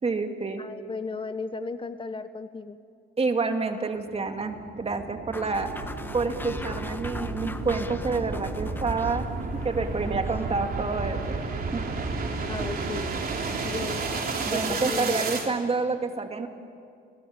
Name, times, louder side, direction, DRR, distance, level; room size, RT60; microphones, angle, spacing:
voice 1, 0.0-0.6 3.2-5.7 6.1-9.3 9.6-11.2 11.7-11.8 14.4-16.5, right 4 dB, 30° right, 5 dB, 2.5 m, -28 dB
voice 2, 0.6-2.8 12.5-13.2 13.6-14.1 14.5-15.3, left 4 dB, 25° left, 11 dB, 0.9 m, -35 dB
sound 1, 4.0-15.5, right 4 dB, 50° right, 3.9 m, -32 dB
sound 2, 5.3-10.5, left 1 dB, 10° left, 1.5 m, -42 dB
sound 3, 5.5-12.7, left 7 dB, 85° left, 2.2 m, -45 dB
29.0 x 19.0 x 8.9 m, 2.3 s
cardioid pair, 90°, 20 cm